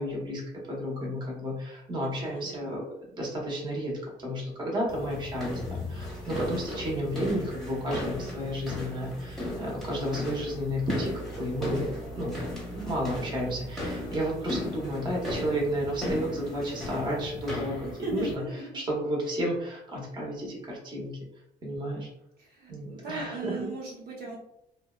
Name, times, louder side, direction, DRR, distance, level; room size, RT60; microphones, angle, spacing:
voice 1, 0.0-2.9 3.1-12.4 12.7-18.4 18.7-21.2 21.6-22.1 22.7-23.7, equal, 25° right, -3 dB, 0.9 m, -32 dB
voice 2, 2.2-2.6 17.8-18.8 22.4-24.4, right 3 dB, 65° right, -4 dB, 1.0 m, -38 dB
sound 1, 4.9-18.3, left 1 dB, ahead, 1.0 m, -36 dB
2.6 x 2.1 x 2.3 m, 0.80 s
cardioid pair, 110°, 17 cm